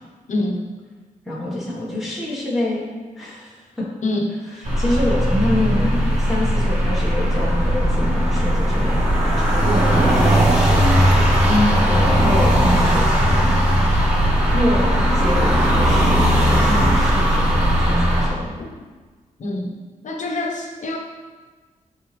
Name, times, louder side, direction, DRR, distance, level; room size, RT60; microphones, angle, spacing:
voice 1, 0.3-0.6 4.0-4.4 11.5-11.7 16.7-17.0 18.6-18.7 19.4-19.8 20.0-21.0, left 2 dB, 60° left, 2 dB, 1.0 m, -24 dB
voice 2, 1.2-2.9 3.2-3.9 4.6-9.0 9.4-10.8 11.9-13.6 14.5-18.6, left 1 dB, ahead, -8 dB, 1.6 m, -26 dB
sound 1, 4.6-18.3, equal, 45° right, 2.0 m, -17 dB
12.0 x 4.1 x 3.4 m, 1.4 s
wide cardioid pair, 175°, 14 cm